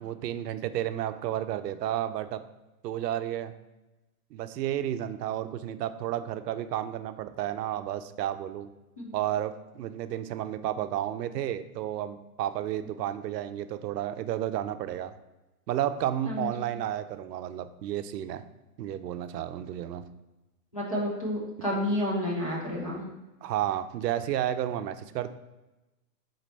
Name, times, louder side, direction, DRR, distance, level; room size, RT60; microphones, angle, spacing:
voice 1, 0.0-2.4 2.8-3.5 4.3-8.7 9.1-15.1 15.7-18.4 18.8-20.0 23.4-25.3, right 11 dB, 90° right, 11 dB, 0.5 m, -32 dB
voice 2, 20.7-23.0, left 1 dB, 25° left, -5 dB, 0.3 m, -30 dB
4.0 x 3.2 x 4.0 m, 1.0 s
hypercardioid pair, 160°, 48 cm